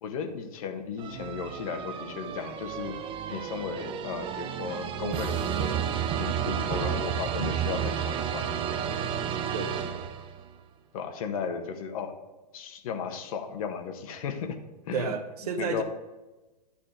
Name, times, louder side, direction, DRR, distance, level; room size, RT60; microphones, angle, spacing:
voice 1, 0.0-5.8 6.2-9.1 10.9-12.1 12.5-14.6 14.9-15.1 15.6-15.8, left 6 dB, 55° left, 6 dB, 1.4 m, -35 dB
sound 1, 1.0-10.5, right 8 dB, 25° right, 0.7 m, -31 dB
voice 2, 9.5-10.1 14.9-15.8, right 5 dB, 65° right, 8 dB, 1.1 m, -32 dB
11.5 x 4.3 x 5.1 m, 1.1 s
hypercardioid pair, 120°, 21 cm